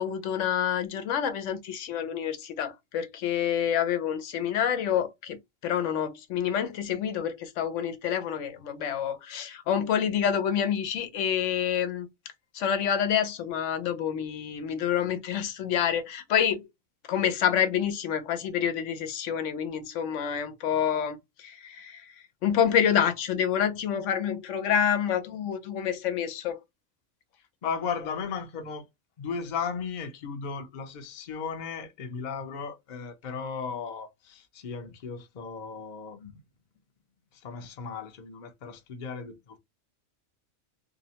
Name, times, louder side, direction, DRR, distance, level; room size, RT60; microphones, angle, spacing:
voice 1, 0.0-5.4 5.6-12.1 12.5-16.6 17.1-22.0 22.4-26.6, left 8 dB, 85° left, 0.9 m, -28 dB
voice 2, 27.6-28.8 29.2-36.4 37.4-39.6, left 5 dB, 50° left, 0.6 m, -36 dB
2.7 x 2.0 x 2.8 m
omnidirectional pair, 1.2 m